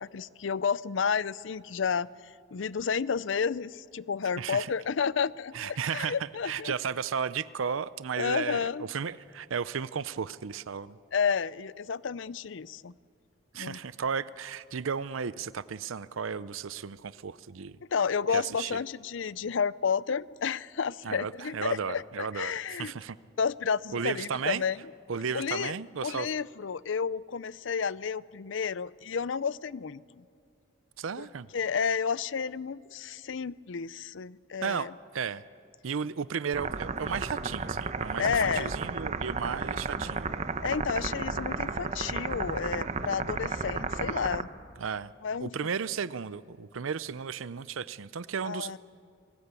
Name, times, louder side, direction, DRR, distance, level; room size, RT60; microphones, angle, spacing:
voice 1, 0.0-2.1 2.5-6.7 8.2-8.9 11.1-12.9 13.5-13.8 17.9-22.9 23.4-24.8 25.3-25.7 26.0-30.2 31.2-31.3 31.5-34.9 38.2-38.8 40.6-44.5 45.2-45.7 48.4-48.8, left 6 dB, 65° left, 20 dB, 0.5 m, -31 dB
voice 2, 4.4-4.7 5.5-11.0 13.5-17.8 18.3-18.8 21.0-22.5 22.8-23.2 23.9-24.6 25.1-26.3 31.0-31.5 34.6-34.9 35.1-35.4 35.8-40.3 44.8-45.1 45.4-48.7, right 6 dB, 80° right, 16 dB, 0.6 m, -34 dB
sound 1, 36.5-44.4, right 4 dB, 35° right, 0.9 m, -33 dB
28.5 x 19.5 x 8.3 m, 2.3 s
head